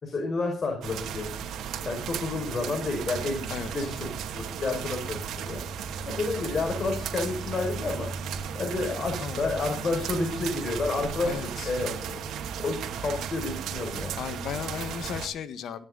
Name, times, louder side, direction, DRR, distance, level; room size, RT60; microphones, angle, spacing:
voice 1, 0.0-1.3 1.9-5.6 6.1-8.1 8.5-12.3 12.6-14.1, left 3 dB, 45° left, 3 dB, 5.9 m, -30 dB
sound 1, 0.8-15.3, right 7 dB, 80° right, 2.7 m, -35 dB
voice 2, 11.2-11.7 14.2-15.8, left 8 dB, 75° left, 11 dB, 1.7 m, -35 dB
18.0 x 13.0 x 4.2 m, 0.35 s
cardioid pair, 90°, 0 cm